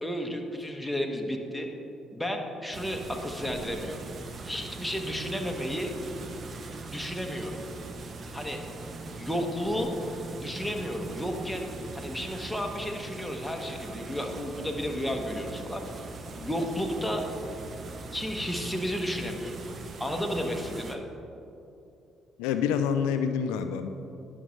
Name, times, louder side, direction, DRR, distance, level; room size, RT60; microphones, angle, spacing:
voice 1, 0.0-1.7 2.1-4.0 4.5-5.9 6.9-7.6 8.3-8.6 9.2-9.9 10.4-11.7 11.9-15.9 16.4-17.2 18.1-19.6 20.0-21.0, equal, 5° left, 2 dB, 1.1 m, -32 dB
sound 1, 2.7-21.0, right 3 dB, 50° right, 0.7 m, -41 dB
voice 2, 22.4-23.9, left 7 dB, 85° left, 8 dB, 0.3 m, -27 dB
11.0 x 6.2 x 3.2 m, 2.7 s
supercardioid pair, 60°, 0 cm